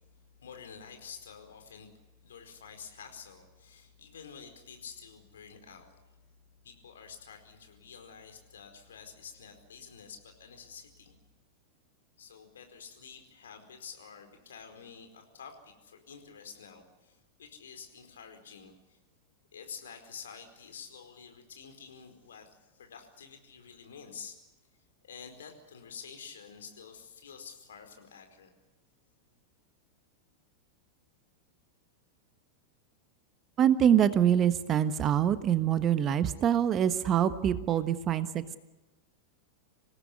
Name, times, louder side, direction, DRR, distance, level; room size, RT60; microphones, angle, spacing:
voice 1, 0.4-1.9 2.2-6.0 6.6-11.1 12.2-19.0 19.5-24.4 25.0-28.5, left 6 dB, 65° left, 5 dB, 4.6 m, -49 dB
voice 2, 33.6-38.6, right 9 dB, 30° right, 13 dB, 1.3 m, -25 dB
27.0 x 18.0 x 9.7 m, 1.1 s
figure-of-eight pair, 90°, 0 cm